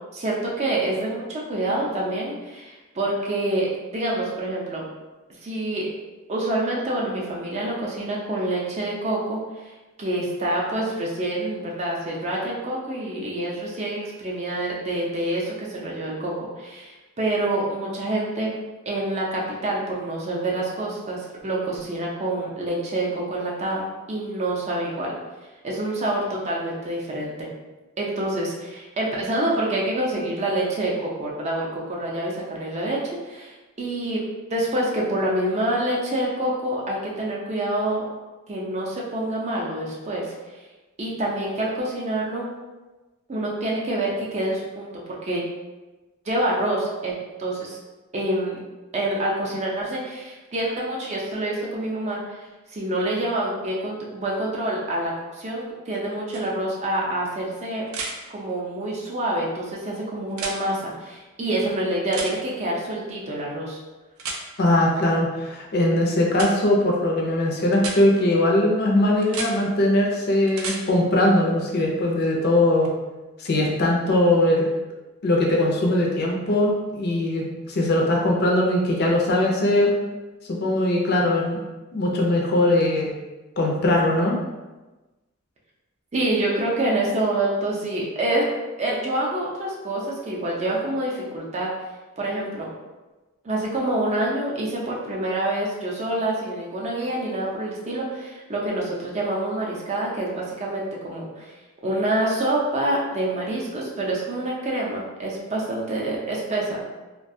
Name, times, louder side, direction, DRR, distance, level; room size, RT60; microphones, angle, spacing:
voice 1, 0.1-4.8 5.4-5.9 6.3-9.7 10.0-18.6 18.9-23.8 24.1-25.2 25.6-27.5 28.0-33.0 33.3-33.5 33.8-34.2 34.5-38.0 38.5-40.3 41.0-42.5 43.3-45.4 46.3-47.8 48.1-48.6 48.9-52.4 52.7-57.8 58.3-63.8 86.1-88.5 88.8-91.7 92.2-92.7 93.4-101.5 101.8-106.8, right 1 dB, 30° right, -3 dB, 0.4 m, -27 dB
sound 1, 56.3-56.4 57.9-58.1 60.3-60.6 62.1-62.3 64.2-64.4 66.3-66.5 67.7-68.0 69.2-69.5 70.5-70.8 72.8-72.9, right 4 dB, 90° right, 0.4 m, -31 dB
voice 2, 64.6-72.9 73.4-74.7 75.2-79.9 80.5-81.6 81.9-83.1 83.6-84.4, left 1 dB, 50° left, -1 dB, 0.4 m, -20 dB
2.3 x 2.2 x 2.6 m, 1.1 s
head